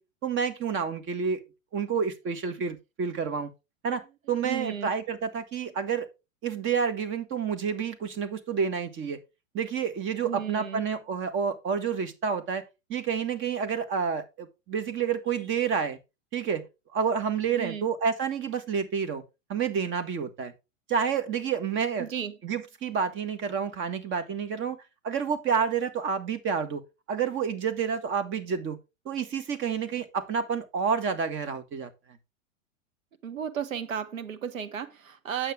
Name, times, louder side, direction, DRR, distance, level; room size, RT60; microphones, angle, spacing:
voice 1, 0.2-1.4 1.7-3.5 3.8-4.0 4.3-6.1 6.4-9.2 9.5-12.6 12.9-16.0 16.3-16.7 16.9-19.2 19.5-20.5 20.9-22.1 22.4-24.8 25.0-26.8 27.1-28.8 29.1-31.9, right 6 dB, 30° right, 1.7 m, -29 dB
voice 2, 4.4-4.9 10.2-10.8 17.6-17.9 22.0-22.4 33.2-35.5, right 8 dB, 85° right, 1.2 m, -34 dB
9.2 x 7.5 x 3.7 m
hypercardioid pair, 110°, 39 cm